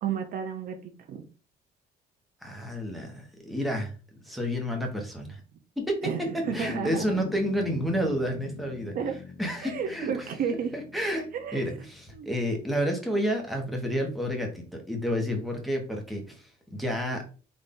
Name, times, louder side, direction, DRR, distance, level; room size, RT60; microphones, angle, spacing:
voice 1, 0.0-1.3 6.0-7.2 8.9-9.2 9.6-10.8 11.3-11.7 12.1-12.3, right 7 dB, 55° right, 6 dB, 0.6 m, -32 dB
voice 2, 2.4-3.9 4.2-5.4 5.8-6.0 6.5-8.9 9.4-10.3 10.7-11.3 11.5-17.2, equal, ahead, 1 dB, 1.2 m, -30 dB
sound 1, 6.4-12.2, left 7 dB, 40° left, 0.5 m, -42 dB
4.0 x 2.6 x 3.6 m, 0.36 s
cardioid pair, 110°, 17 cm